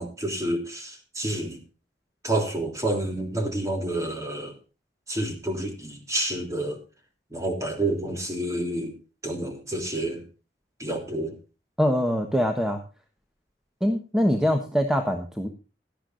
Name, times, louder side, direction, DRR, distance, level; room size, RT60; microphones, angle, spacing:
voice 1, 0.0-1.6 2.2-4.6 5.1-6.8 7.3-8.9 9.2-10.2 10.8-11.3, right 1 dB, 20° right, 4 dB, 3.2 m, -29 dB
voice 2, 11.8-12.8 13.8-15.5, equal, 5° right, 5 dB, 1.3 m, -23 dB
18.0 x 12.0 x 2.6 m, 0.31 s
head